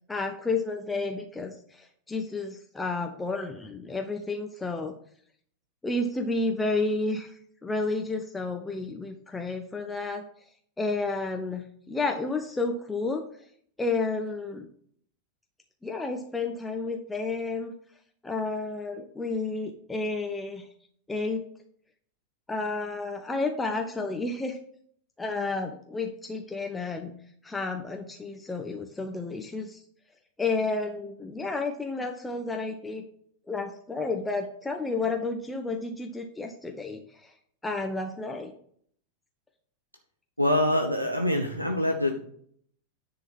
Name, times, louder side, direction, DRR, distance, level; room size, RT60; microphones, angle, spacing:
voice 1, 0.1-4.9 5.8-10.2 10.8-13.2 13.8-14.7 15.8-17.7 18.2-20.7 21.1-21.4 22.5-24.6 25.2-27.1 27.4-29.8 30.4-33.0 33.5-37.3 37.6-38.5, left 3 dB, 10° left, 3 dB, 0.8 m, -31 dB
voice 2, 40.4-42.2, left 1 dB, 90° right, 3 dB, 0.8 m, -25 dB
9.9 x 3.8 x 6.0 m, 0.63 s
figure-of-eight pair, 90°, 0 cm